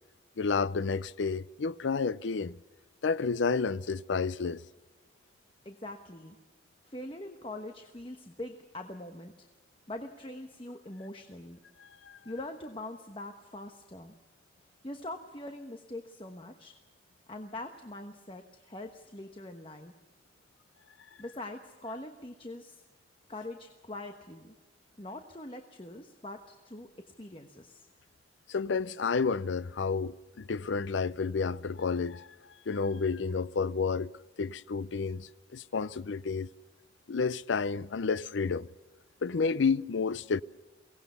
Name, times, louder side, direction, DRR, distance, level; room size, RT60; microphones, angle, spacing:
voice 1, 0.4-2.5 3.0-4.6 11.8-12.2 28.5-32.3 32.7-34.1 34.4-36.5 37.1-38.7 39.2-40.4, left 5 dB, 80° left, 0.5 m, -30 dB
voice 2, 5.6-6.4 6.8-9.5 9.9-11.6 12.2-14.1 14.8-16.8 17.3-19.9 21.2-22.8 23.3-24.5 25.0-27.9, left 1 dB, 30° left, 1.1 m, -43 dB
23.0 x 18.0 x 6.9 m
head